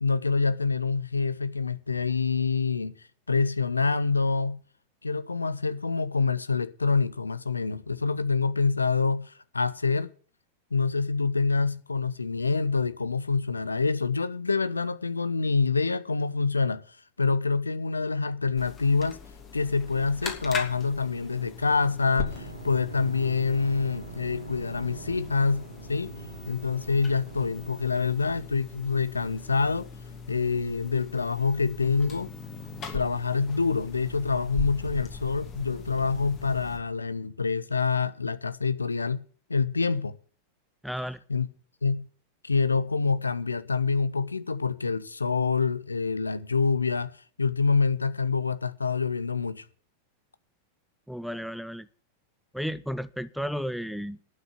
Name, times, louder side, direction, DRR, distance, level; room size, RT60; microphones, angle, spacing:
voice 1, 0.0-2.9 3.3-4.6 5.0-10.1 10.7-16.8 17.2-19.2 19.5-26.1 26.5-29.9 30.3-32.3 32.9-39.2 39.5-40.1 41.3-41.5 41.8-42.1 42.4-47.1 47.4-49.6, left 4 dB, 80° left, 0.7 m, -26 dB
sound 1, 18.6-36.8, left 5 dB, 30° left, 2.7 m, -41 dB
sound 2, 22.1-27.8, right 3 dB, 80° right, 2.3 m, -43 dB
voice 2, 40.8-41.2 51.1-51.9 52.5-54.2, equal, ahead, 0.6 m, -33 dB
11.5 x 6.4 x 9.1 m
figure-of-eight pair, 90°, 0 cm